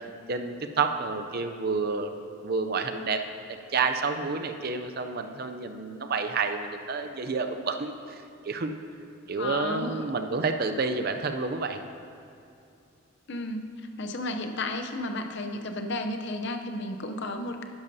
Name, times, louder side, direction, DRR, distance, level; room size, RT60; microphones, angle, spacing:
voice 1, 0.0-2.1 2.4-3.3 3.7-8.8 9.3-11.8, right 4 dB, 45° right, 7 dB, 0.5 m, -29 dB
voice 2, 9.4-10.0 13.3-13.6 14.0-17.6, left 2 dB, 55° left, 6 dB, 0.6 m, -33 dB
12.0 x 10.5 x 2.7 m, 2.5 s
head